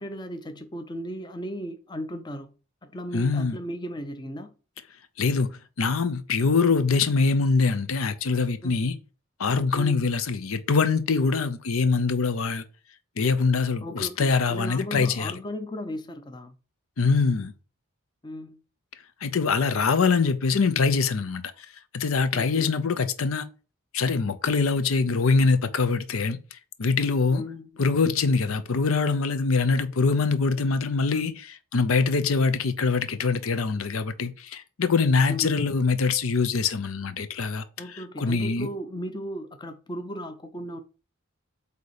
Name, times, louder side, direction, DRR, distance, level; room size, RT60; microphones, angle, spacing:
voice 1, 0.0-2.5 2.8-4.5 8.6-8.9 9.7-10.0 13.8-16.6 18.2-18.6 22.3-22.8 27.3-27.8 35.3-35.7 37.8-40.8, equal, 20° left, 0.6 m, -36 dB
voice 2, 3.1-3.6 5.2-5.5 5.8-9.0 9.4-12.6 13.2-15.3 17.0-17.5 19.2-21.4 21.9-23.4 23.9-27.4 27.8-37.6 37.9-38.7, left 4 dB, 80° left, 0.6 m, -24 dB
8.2 x 2.8 x 4.9 m
head